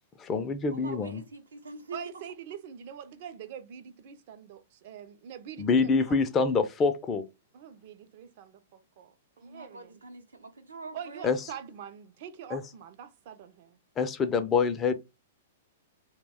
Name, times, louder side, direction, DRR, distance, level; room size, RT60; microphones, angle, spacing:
voice 1, 0.2-1.2 5.6-7.2 11.2-11.4 12.5-12.6 14.0-14.9, left 4 dB, 25° left, 0.4 m, -26 dB
voice 2, 0.7-2.0 9.4-11.3, right 3 dB, 90° right, 0.7 m, -44 dB
voice 3, 1.9-6.2 7.5-10.0 10.9-13.8, right 8 dB, 55° right, 0.5 m, -44 dB
2.3 x 2.2 x 3.4 m
hypercardioid pair, 115°, 0 cm